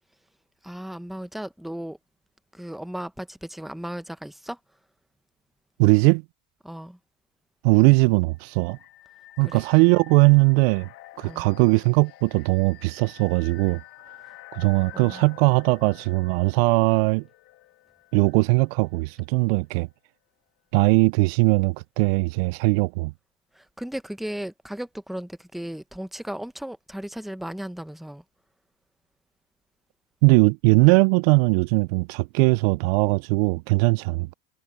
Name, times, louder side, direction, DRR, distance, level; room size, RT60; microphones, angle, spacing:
voice 1, 0.6-2.0 2.5-4.6 6.6-7.0 9.4-9.6 11.2-11.5 14.9-15.2 23.5-28.2, equal, ahead, 0.9 m, -35 dB
voice 2, 5.8-6.2 7.6-8.8 9.4-10.9 11.2-13.8 14.5-17.2 18.1-19.9 20.7-23.1 30.2-34.3, right 26 dB, 65° right, 0.5 m, -20 dB
sound 1, 8.4-19.2, left 15 dB, 45° left, 2.4 m, -49 dB
supercardioid pair, 130°, 32 cm